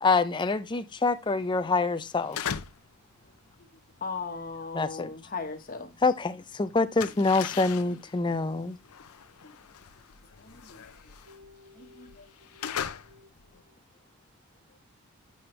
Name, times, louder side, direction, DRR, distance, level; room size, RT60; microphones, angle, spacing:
voice 1, 0.0-2.4 4.7-5.1 6.0-8.8, left 3 dB, 20° left, 0.5 m, -26 dB
sound 1, 2.1-3.0 3.2-6.2 6.4-13.6, left 8 dB, 80° left, 0.6 m, -39 dB
voice 2, 4.0-5.9 9.4-9.5 10.4-11.1 11.7-12.3, left 4 dB, 40° left, 1.2 m, -38 dB
voice 3, 11.3-12.7 13.0-13.6 14.7-14.8, left 3 dB, 70° right, 3.6 m, -56 dB
8.4 x 5.9 x 3.2 m
head